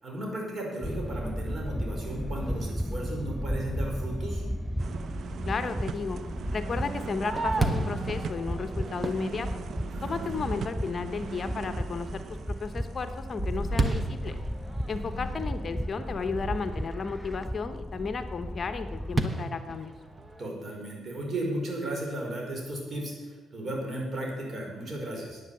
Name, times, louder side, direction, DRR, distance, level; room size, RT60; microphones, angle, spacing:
voice 1, 0.0-4.4 9.9-10.3 14.8-15.3 20.4-25.4, right 1 dB, 40° right, -1 dB, 5.1 m, -35 dB
sound 1, 0.8-19.2, equal, 5° left, 0.4 m, -35 dB
sound 2, 4.8-14.6 15.0-15.1, right 6 dB, 60° right, 0.7 m, -41 dB
voice 2, 5.5-6.2 6.5-9.5 10.0-12.2 12.5-14.4 14.9-19.9, left 4 dB, 40° left, 8 dB, 0.9 m, -33 dB
Fireworks, 6.7-10.2 10.8-10.9 11.4-11.8 12.2-17.1 19.2-20.5, right 2 dB, 15° right, 1.2 m, -33 dB
11.0 x 9.4 x 7.7 m, 1.4 s
cardioid pair, 90°, 0 cm